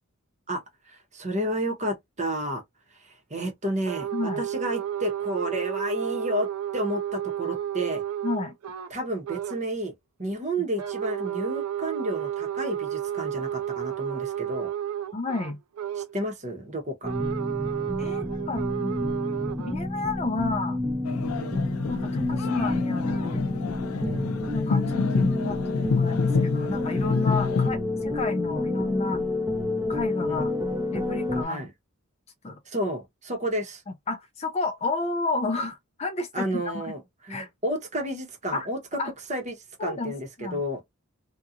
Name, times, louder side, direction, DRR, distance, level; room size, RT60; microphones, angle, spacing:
voice 1, 0.9-2.6 3.0-6.5 6.7-8.0 8.9-9.9 10.2-14.7 15.9-17.1 21.3-21.7 24.0-24.3 30.2-30.5 31.4-31.7 32.7-33.8 36.3-39.0 39.3-40.8, right 1 dB, 30° right, 0.9 m, -31 dB
sound 1, 3.9-8.9 9.2-9.6 10.8-16.2 17.0-19.7, right 10 dB, 80° right, 0.4 m, -31 dB
voice 2, 8.2-8.5 15.1-15.6 18.0-19.0 19.6-20.8 21.9-23.5 24.5-29.2 29.9-30.5 30.9-31.7 32.4-32.6 34.1-36.9 37.3-37.5 38.5-38.7 39.0-39.1 39.8-40.6, left 3 dB, 30° left, 0.4 m, -31 dB
trance lead rise, 17.0-31.4, left 2 dB, 10° right, 0.7 m, -29 dB
sound 2, 21.0-27.7, left 4 dB, 80° left, 0.5 m, -27 dB
2.8 x 2.3 x 2.4 m
head